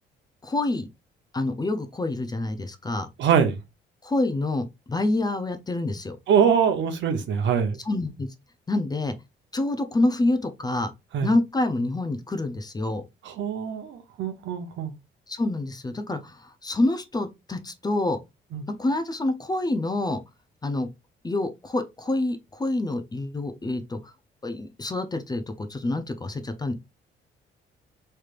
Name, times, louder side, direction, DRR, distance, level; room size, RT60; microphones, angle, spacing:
voice 1, 0.4-0.9 1.3-3.1 4.0-6.2 7.9-8.3 8.7-9.1 9.5-10.9 11.2-13.0 15.3-18.2 18.8-20.2 20.6-20.9 21.2-24.0 24.4-26.7, left 2 dB, 20° left, 0.5 m, -27 dB
voice 2, 3.2-3.6 6.3-7.8 11.1-11.3 13.2-14.9 18.5-18.7, right 7 dB, 70° right, 0.8 m, -23 dB
3.3 x 3.1 x 2.4 m
cardioid pair, 90°, 20 cm